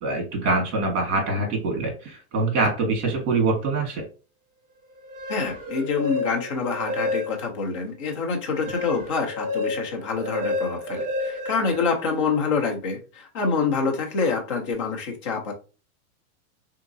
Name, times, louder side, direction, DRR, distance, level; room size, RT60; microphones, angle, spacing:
voice 1, 0.0-4.0, right 3 dB, 55° right, 2 dB, 1.6 m, -24 dB
sound 1, 5.0-7.7 8.1-12.4, left 2 dB, 35° right, 1.4 m, -31 dB
voice 2, 5.3-15.5, left 4 dB, 25° left, 2 dB, 0.4 m, -26 dB
3.5 x 3.0 x 2.6 m, 0.33 s
supercardioid pair, 165°, 44 cm